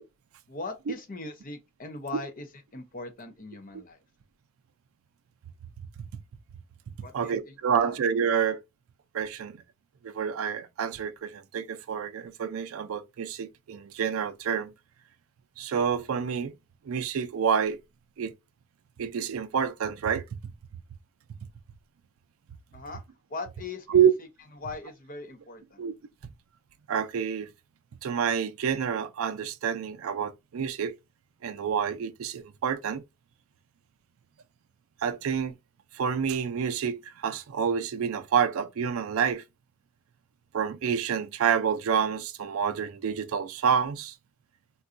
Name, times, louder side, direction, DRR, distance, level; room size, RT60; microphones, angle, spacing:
voice 1, 0.5-2.5 2.7-4.0 7.0-7.3 7.8-8.0 22.7-23.0 23.3-24.0 24.6-25.8, left 3 dB, 40° left, 0.6 m, -39 dB
voice 2, 7.1-8.6 9.1-9.6 10.0-14.7 15.6-16.5 16.8-17.8 18.2-18.3 19.0-20.5 23.9-24.1 25.8-25.9 26.9-27.5 28.0-31.0 31.4-33.0 35.0-35.6 35.9-39.4 40.5-44.1, right 7 dB, 75° right, 0.4 m, -28 dB
3.7 x 2.2 x 2.5 m
head